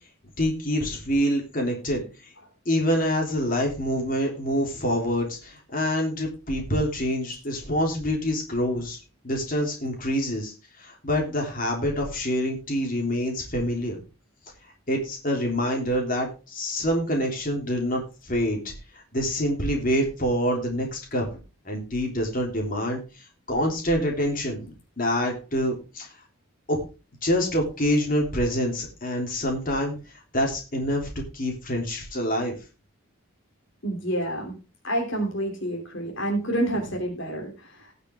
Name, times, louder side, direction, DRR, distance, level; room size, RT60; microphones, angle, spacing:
voice 1, 0.4-2.0 2.7-9.0 9.2-14.0 14.9-21.3 21.7-23.0 23.5-26.1 26.7-26.8 27.2-30.0 30.3-31.1 31.3-32.5, equal, 40° left, 1 dB, 3.5 m, -26 dB
voice 2, 33.8-34.6 34.8-37.9, right 1 dB, 60° left, 1 dB, 3.1 m, -28 dB
19.0 x 6.7 x 3.5 m, 0.31 s
head